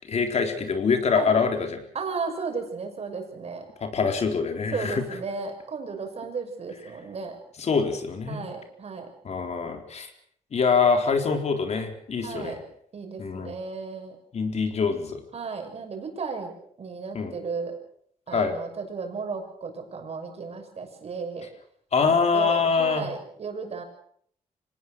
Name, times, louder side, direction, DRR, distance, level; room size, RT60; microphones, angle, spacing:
voice 1, 0.1-1.8 3.8-5.0 7.6-8.5 9.2-10.1 10.5-12.6 13.2-13.5 14.3-15.2 17.1-17.3 18.3-18.6 21.9-23.1, left 5 dB, 55° left, 5 dB, 4.1 m, -24 dB
voice 2, 1.9-3.7 4.7-7.4 8.3-9.1 12.2-12.6 12.9-14.2 15.3-16.5 16.8-17.7 18.3-21.5 22.0-23.8, right 4 dB, 50° right, 4 dB, 6.4 m, -34 dB
25.5 x 19.0 x 6.5 m, 0.63 s
cardioid pair, 105°, 14 cm